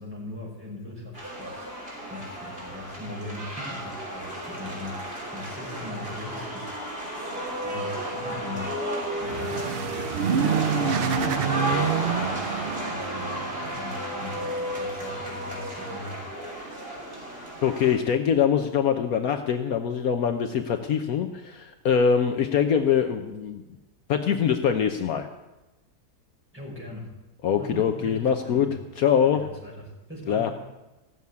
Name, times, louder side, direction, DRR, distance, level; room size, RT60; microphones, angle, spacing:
voice 1, 0.0-1.7 2.1-5.0 5.3-7.2 7.6-8.8 9.1-11.1 11.4-16.3 26.5-27.1 27.6-28.7 29.2-30.5, left 2 dB, 5° right, -5 dB, 5.3 m, -40 dB
sound 1, 1.1-18.0, right 1 dB, 35° right, 3.6 m, -33 dB
sound 2, 9.0-13.8, right 7 dB, 85° right, 0.5 m, -27 dB
voice 2, 17.6-23.6 24.1-25.3 27.4-28.7 29.0-29.4 30.3-30.5, left 7 dB, 70° left, 6 dB, 1.2 m, -23 dB
15.5 x 7.2 x 9.4 m, 1.0 s
omnidirectional pair, 1.7 m